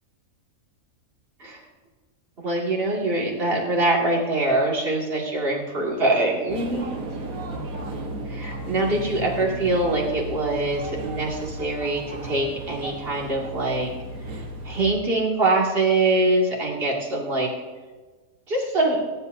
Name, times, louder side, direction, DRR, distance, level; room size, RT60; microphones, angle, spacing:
voice 1, 2.4-6.9 8.3-13.9 14.6-17.5 18.5-19.0, right 2 dB, 40° right, -3 dB, 2.5 m, -23 dB
sound 1, 6.5-14.9, right 2 dB, 75° right, 1.7 m, -34 dB
25.0 x 10.5 x 2.7 m, 1.3 s
omnidirectional pair, 1.5 m